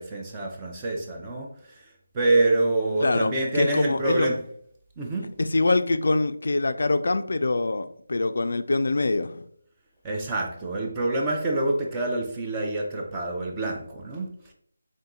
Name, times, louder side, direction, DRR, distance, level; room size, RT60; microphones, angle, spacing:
voice 1, 0.0-4.4 5.0-5.3 10.0-14.5, right 2 dB, 15° right, 0.6 m, -27 dB
voice 2, 3.0-4.4 5.4-9.4, left 2 dB, 65° left, 0.3 m, -24 dB
3.6 x 2.7 x 3.7 m
figure-of-eight pair, 165°, 0 cm